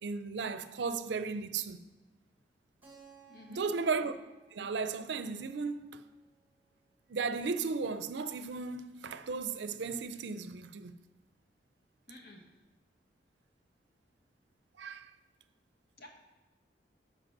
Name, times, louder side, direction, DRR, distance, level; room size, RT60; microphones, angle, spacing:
voice 1, 0.0-1.8 3.5-4.1 4.5-6.0 7.1-10.9 14.8-15.1, right 4 dB, 80° right, 0.5 m, -35 dB
Keyboard (musical), 2.8-7.4, right 6 dB, 10° right, 1.7 m, -62 dB
voice 2, 3.3-3.7 12.1-12.5 16.0-16.1, left 1 dB, 55° left, 1.3 m, -51 dB
7.7 x 4.8 x 6.0 m
head